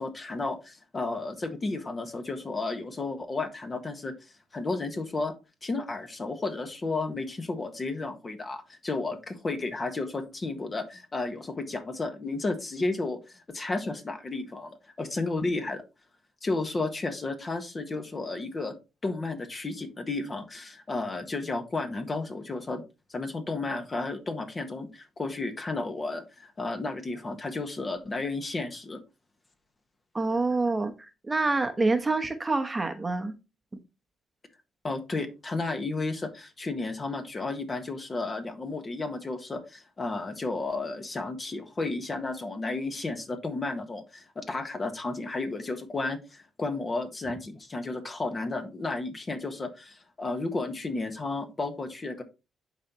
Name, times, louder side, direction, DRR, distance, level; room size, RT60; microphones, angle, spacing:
voice 1, 0.0-4.1 4.5-5.3 5.6-15.8 16.4-18.7 19.0-22.8 23.1-29.0 34.8-52.2, left 3 dB, 30° left, 6 dB, 1.5 m, -33 dB
voice 2, 30.1-30.9 31.3-33.3, right 3 dB, 20° right, 7 dB, 1.0 m, -26 dB
10.5 x 4.1 x 3.0 m, 0.27 s
cardioid pair, 90°, 0 cm